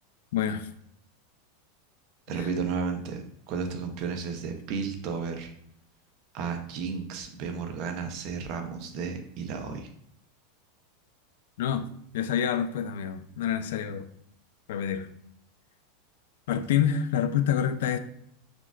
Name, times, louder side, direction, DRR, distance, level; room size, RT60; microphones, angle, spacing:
voice 1, 0.3-0.7 11.6-11.9 12.1-14.1 14.7-15.1 16.5-18.0, left 9 dB, 70° left, 0.3 m, -27 dB
voice 2, 2.3-3.2 3.5-5.5 6.3-9.9, right 5 dB, 40° right, 0.5 m, -33 dB
5.9 x 2.4 x 2.4 m
supercardioid pair, 175°, 0 cm